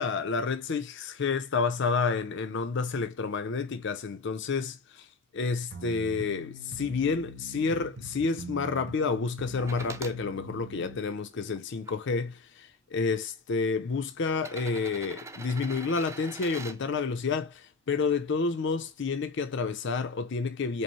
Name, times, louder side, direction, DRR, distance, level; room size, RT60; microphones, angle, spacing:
voice 1, 0.0-5.1 5.3-20.8, left 4 dB, 60° left, 0.5 m, -30 dB
sound 1, 5.7-11.0, right 1 dB, 55° right, 0.7 m, -44 dB
sound 2, 9.6-10.2 10.9-11.9 12.9-13.0 14.3-16.8 18.7-18.8, right 3 dB, 15° right, 0.3 m, -43 dB
5.2 x 2.0 x 3.0 m
head